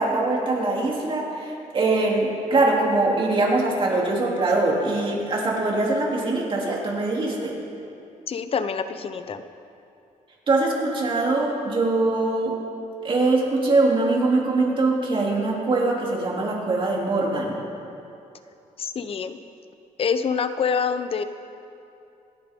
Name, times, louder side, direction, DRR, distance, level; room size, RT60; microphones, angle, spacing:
voice 1, 0.0-7.6 10.5-12.6 13.0-17.6, right 2 dB, 40° right, -2 dB, 3.1 m, -22 dB
voice 2, 8.3-9.4 18.8-19.4 20.0-21.2, left 6 dB, 45° left, 10 dB, 0.8 m, -26 dB
26.5 x 10.0 x 3.8 m, 2.7 s
cardioid pair, 115°, 13 cm